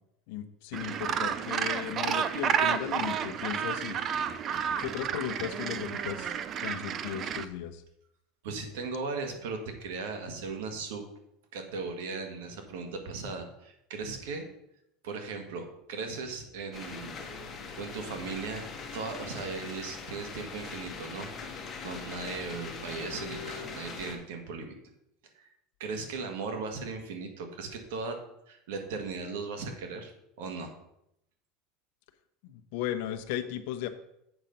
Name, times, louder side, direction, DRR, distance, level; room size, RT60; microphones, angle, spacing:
voice 1, 0.3-4.0 4.8-6.3 6.6-7.8 32.4-33.9, left 11 dB, 70° left, 9 dB, 0.9 m, -36 dB
Gull seagull, 0.7-7.4, right 8 dB, 30° right, 0.4 m, -31 dB
voice 2, 8.4-11.0 11.5-14.5 15.0-17.2 17.8-18.6 18.9-21.3 21.8-24.7 25.3-25.5 25.8-28.2 28.5-30.1 30.4-30.7, right 4 dB, 90° right, 5 dB, 1.7 m, -37 dB
sound 1, 16.7-24.2, left 4 dB, 25° left, 1.4 m, -41 dB
8.0 x 5.3 x 5.9 m, 0.80 s
supercardioid pair, 155°, 0 cm